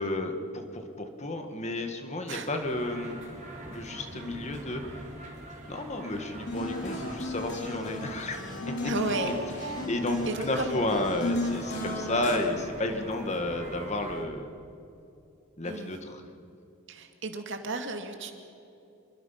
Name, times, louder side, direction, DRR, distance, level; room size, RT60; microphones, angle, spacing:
voice 1, 0.0-3.2 3.7-5.0 5.7-8.9 9.2-9.3 9.9-14.5 15.6-16.3, left 1 dB, 35° left, 5 dB, 1.8 m, -32 dB
sound 1, 2.6-14.3, right 1 dB, 35° right, 4.0 m, -44 dB
sound 2, 6.5-12.4, left 1 dB, 55° left, 4.0 m, -34 dB
voice 2, 8.8-9.9 10.3-10.7 15.6-15.9 16.9-18.3, right 2 dB, 60° right, 5 dB, 2.4 m, -34 dB
27.0 x 22.5 x 5.9 m, 2.6 s
head